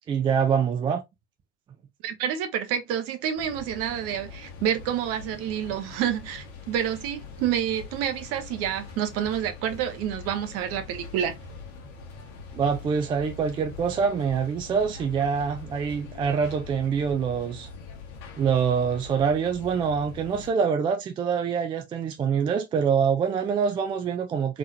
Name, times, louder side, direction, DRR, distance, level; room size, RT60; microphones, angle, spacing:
voice 1, 0.1-1.0 12.5-17.7 18.4-24.6, right 6 dB, 15° right, 0.3 m, -25 dB
voice 2, 2.0-11.3, right 9 dB, 40° right, 0.9 m, -28 dB
sound 1, 3.4-20.5, left 4 dB, 40° left, 1.1 m, -43 dB
3.7 x 3.1 x 2.4 m
figure-of-eight pair, 70°, 35 cm